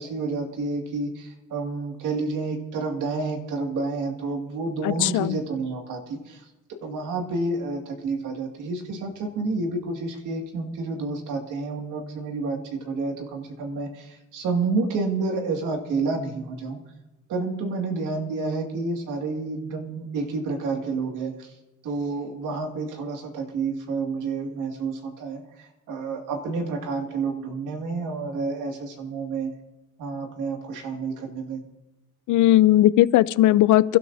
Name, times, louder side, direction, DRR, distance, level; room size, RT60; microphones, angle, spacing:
voice 1, 0.0-6.5 6.8-16.8 17.3-21.5 21.8-29.5 30.0-31.6, right 3 dB, 85° right, 2 dB, 2.2 m, -29 dB
voice 2, 4.8-5.4 32.3-34.0, left 14 dB, 80° left, 18 dB, 0.5 m, -18 dB
28.0 x 12.5 x 2.7 m, 1.1 s
cardioid pair, 90°, 30 cm